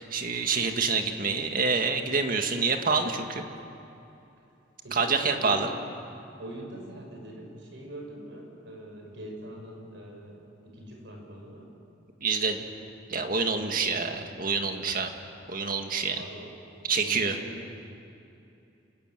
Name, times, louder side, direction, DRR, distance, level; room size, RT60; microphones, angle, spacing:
voice 1, 0.0-3.4 4.9-5.7 12.2-12.6 13.1-15.1 15.5-16.2 16.8-17.4, right 4 dB, 50° right, 5 dB, 1.9 m, -27 dB
voice 2, 4.8-5.7 6.4-11.7 13.5-14.1 16.2-16.6 16.9-17.8, right 1 dB, 75° right, 1 dB, 5.9 m, -43 dB
29.0 x 14.5 x 9.2 m, 2.8 s
head